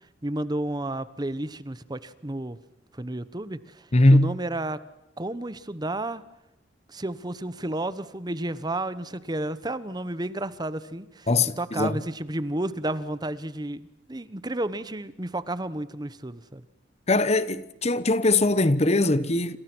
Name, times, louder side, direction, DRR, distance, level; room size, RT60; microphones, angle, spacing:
voice 1, 0.2-2.6 2.9-4.8 5.2-6.2 6.9-11.3 11.6-16.6, right 1 dB, 20° right, 1.0 m, -32 dB
voice 2, 3.9-4.3 11.3-11.9 17.1-19.6, left 2 dB, 35° left, 1.0 m, -21 dB
28.0 x 27.5 x 6.2 m
head